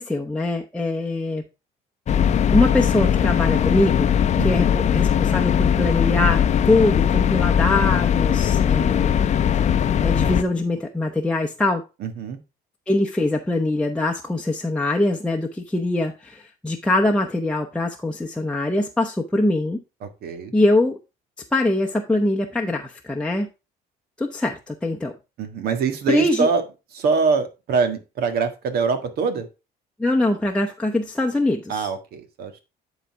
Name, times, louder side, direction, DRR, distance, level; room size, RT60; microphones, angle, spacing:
voice 1, 0.0-1.4 2.5-4.1 4.4-9.2 10.0-11.8 12.9-19.8 20.5-21.0 21.5-23.5 24.2-25.1 26.1-26.5 30.0-31.9, left 2 dB, 5° left, 0.8 m, -23 dB
sound 1, 2.1-10.4, left 8 dB, 45° left, 0.6 m, -19 dB
voice 2, 4.4-4.7 12.0-12.4 20.0-20.5 25.4-26.7 26.9-29.5 31.7-32.6, right 5 dB, 65° right, 1.7 m, -24 dB
10.0 x 4.1 x 4.5 m
cardioid pair, 110°, 17 cm